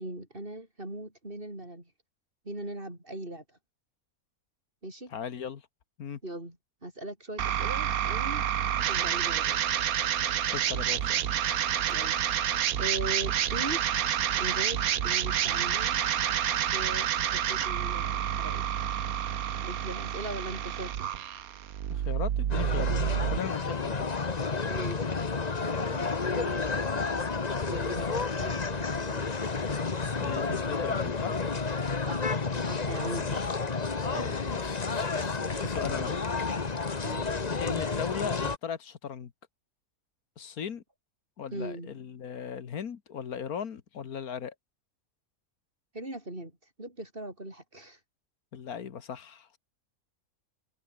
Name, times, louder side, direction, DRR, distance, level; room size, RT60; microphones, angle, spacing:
voice 1, 0.0-1.9 2.4-3.4 4.8-5.1 6.2-6.6 6.8-8.5 8.8-9.6 11.9-12.2 12.8-13.9 14.3-16.0 16.7-18.7 19.6-21.1 24.7-25.1 25.6-27.1 27.7-29.2 32.1-33.6 37.0-37.3 41.5-42.0 45.9-46.5 46.8-48.0, right 1 dB, 35° right, 6.4 m, -40 dB
voice 2, 5.1-5.6 6.0-6.2 10.5-11.3 21.9-22.9 23.3-24.3 30.2-31.4 33.2-33.4 34.1-36.3 37.4-39.3 40.4-40.8 41.4-44.5 48.5-49.6, left 7 dB, 80° left, 1.8 m, -38 dB
sound 1, 7.4-23.4, right 10 dB, 75° right, 1.4 m, -29 dB
sound 2, 22.5-38.6, left 4 dB, 30° left, 1.3 m, -31 dB
omnidirectional pair, 1.5 m